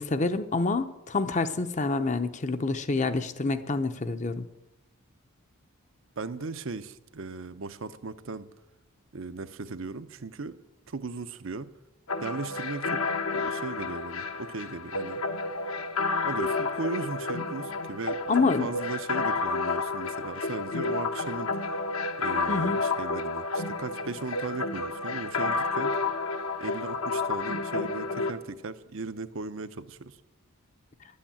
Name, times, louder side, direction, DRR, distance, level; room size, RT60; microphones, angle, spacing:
voice 1, 0.0-4.4 18.3-18.7 22.5-22.8, left 3 dB, 35° left, 10 dB, 0.6 m, -27 dB
voice 2, 6.2-8.5 9.1-10.6 10.9-11.7 12.2-13.0 13.3-15.2 16.2-21.7 22.2-26.0 26.6-30.2, right 3 dB, 60° right, 11 dB, 0.7 m, -37 dB
sound 1, 12.1-28.3, left 3 dB, 70° left, 1.0 m, -30 dB
11.0 x 8.7 x 8.7 m, 0.95 s
head